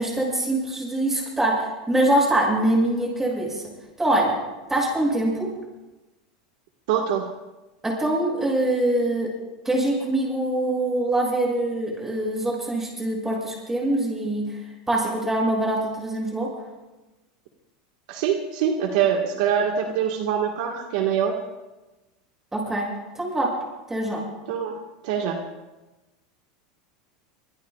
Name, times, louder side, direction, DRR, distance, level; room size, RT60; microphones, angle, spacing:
voice 1, 0.0-3.6 4.0-4.3 4.7-5.5 7.8-9.3 9.6-14.4 14.9-16.5 22.5-22.9 23.1-23.5 23.9-24.2, right 1 dB, 10° right, -2 dB, 7.5 m, -23 dB
voice 2, 6.9-7.3 18.1-21.4 24.5-24.7 25.0-25.4, right 8 dB, 70° right, 2 dB, 1.7 m, -24 dB
25.0 x 21.0 x 2.4 m, 1.1 s
supercardioid pair, 125°, 4 cm